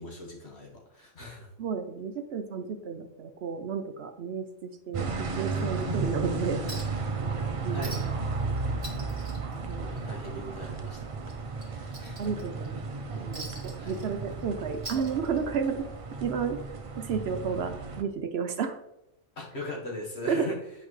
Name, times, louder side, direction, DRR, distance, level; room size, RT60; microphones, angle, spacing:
voice 1, 0.0-1.5 7.7-8.3 9.8-12.2 13.8-14.0 19.4-20.6, left 1 dB, 55° left, -1 dB, 1.7 m, -40 dB
voice 2, 1.6-6.6 7.6-8.1 9.5-9.9 12.2-12.8 13.1-15.9 16.2-18.8 20.3-20.4, right 6 dB, 65° right, 7 dB, 0.8 m, -32 dB
sound 1, 4.9-18.0, right 3 dB, 40° right, 0.5 m, -34 dB
Chink clink, 6.7-7.1 7.4-7.5 7.8-8.3 8.6-10.3 10.6-10.8 11.2-12.7 13.3-14.4 14.7-15.7 16.8-16.9, right 2 dB, 25° right, 1.5 m, -43 dB
8.5 x 5.0 x 3.1 m, 0.84 s
omnidirectional pair, 1.3 m